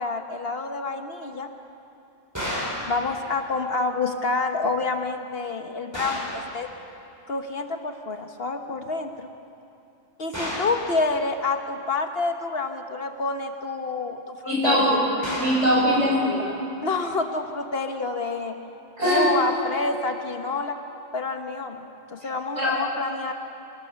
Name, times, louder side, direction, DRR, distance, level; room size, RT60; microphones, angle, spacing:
voice 1, 0.0-1.5 2.9-6.7 7.3-9.3 10.2-15.0 16.8-18.5 19.0-20.8 21.1-23.3, left 3 dB, 55° left, 5 dB, 1.3 m, -28 dB
sound 1, 2.3-2.9 5.9-6.4 10.3-10.8 15.2-15.7, equal, 15° right, 5.4 m, -31 dB
voice 2, 14.4-16.5 19.0-19.3 22.6-22.8, equal, 70° right, -5 dB, 7.2 m, -22 dB
24.5 x 18.0 x 6.9 m, 2.8 s
omnidirectional pair, 1.3 m